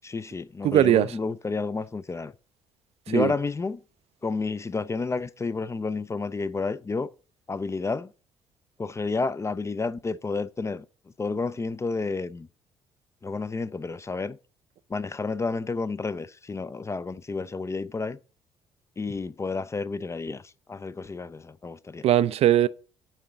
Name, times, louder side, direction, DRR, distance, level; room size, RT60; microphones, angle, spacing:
voice 1, 0.0-2.3 3.1-3.8 4.2-7.1 7.5-8.1 8.8-10.8 11.2-12.5 13.2-14.4 14.9-18.2 19.0-20.4 20.7-22.1, left 4 dB, 20° left, 0.5 m, -30 dB
voice 2, 0.6-1.1 3.1-3.3 22.0-22.7, right 12 dB, 45° right, 0.4 m, -20 dB
8.9 x 3.8 x 6.5 m
figure-of-eight pair, 45°, 14 cm